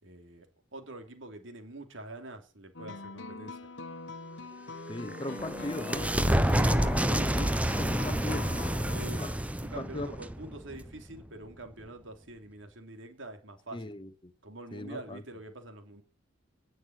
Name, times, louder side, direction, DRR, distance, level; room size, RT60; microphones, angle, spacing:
voice 1, 0.0-0.5 0.7-3.6 8.9-9.3 9.6-13.9 14.4-16.0, right 2 dB, 70° right, 3.0 m, -45 dB
sound 1, 2.7-9.4, left 3 dB, 65° left, 1.3 m, -43 dB
sound 2, 4.8-11.2, right 1 dB, 5° right, 0.7 m, -29 dB
voice 2, 4.9-8.9 9.2-9.3 9.8-10.1 13.7-14.3 14.7-15.2, left 1 dB, 25° left, 0.9 m, -39 dB
18.5 x 6.5 x 8.8 m
head